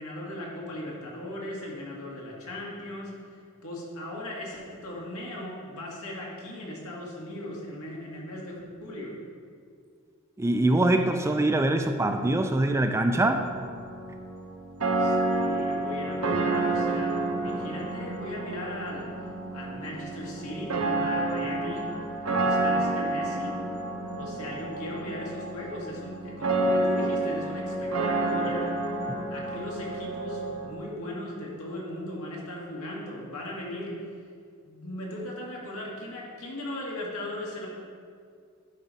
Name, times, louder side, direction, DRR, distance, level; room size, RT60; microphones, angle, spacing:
voice 1, 0.0-9.1 15.0-19.1 19.5-21.9 22.2-23.6 24.2-28.7 29.3-33.9 34.6-37.7, left 1 dB, 85° left, -3 dB, 1.9 m, -38 dB
voice 2, 10.4-13.5, right 1 dB, 15° right, 6 dB, 0.3 m, -23 dB
sound 1, 13.1-30.7, right 2 dB, 80° right, 0.9 m, -29 dB
11.0 x 5.0 x 4.0 m, 2.2 s
head